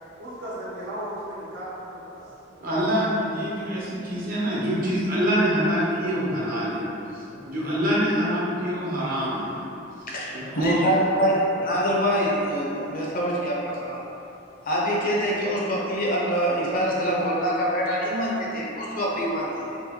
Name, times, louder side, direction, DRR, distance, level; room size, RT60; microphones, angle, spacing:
voice 1, 0.2-3.4 7.3-7.7 10.1-10.6 11.1-11.5, right 1 dB, 75° right, -8 dB, 1.0 m, -38 dB
voice 2, 2.6-6.8 7.5-9.5 10.3-10.7, equal, 50° right, -7 dB, 1.0 m, -25 dB
voice 3, 10.1-14.0 14.7-19.8, equal, 50° left, -4 dB, 0.7 m, -25 dB
3.1 x 3.0 x 3.6 m, 2.8 s
head